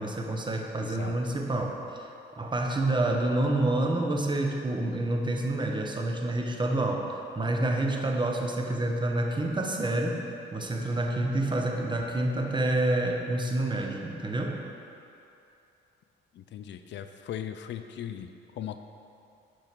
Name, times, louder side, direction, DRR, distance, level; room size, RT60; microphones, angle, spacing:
voice 1, 0.0-1.8 2.4-7.1 7.4-10.2 10.5-14.6, right 1 dB, 25° right, 1 dB, 1.0 m, -28 dB
voice 2, 0.8-1.3 16.3-18.8, left 10 dB, 65° left, 8 dB, 0.5 m, -39 dB
11.0 x 4.9 x 4.6 m, 2.6 s
cardioid pair, 90°, 20 cm